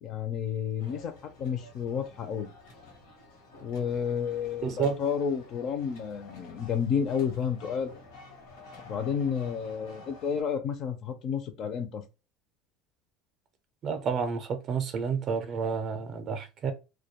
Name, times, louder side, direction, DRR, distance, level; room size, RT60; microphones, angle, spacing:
voice 1, 0.0-1.1 1.4-2.5 3.6-7.9 8.8-12.0, left 7 dB, 40° left, 0.4 m, -31 dB
sound 1, 0.8-10.4, left 3 dB, 90° left, 0.9 m, -51 dB
voice 2, 4.6-5.0 13.8-16.7, right 6 dB, 35° right, 0.4 m, -30 dB
2.2 x 2.2 x 2.8 m
cardioid pair, 160°, 0 cm